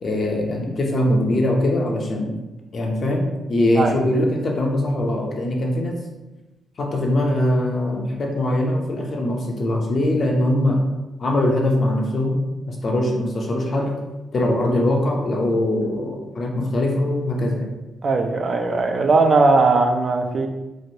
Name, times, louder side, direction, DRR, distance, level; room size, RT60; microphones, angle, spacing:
voice 1, 0.0-2.4 2.7-3.2 3.5-6.0 6.8-10.8 11.2-12.4 12.7-13.9 14.3-17.7, left 1 dB, 45° left, 1 dB, 0.6 m, -22 dB
voice 2, 18.0-20.5, right 3 dB, 40° right, 4 dB, 0.3 m, -18 dB
3.1 x 2.5 x 2.7 m, 1.0 s
cardioid pair, 115°, 0 cm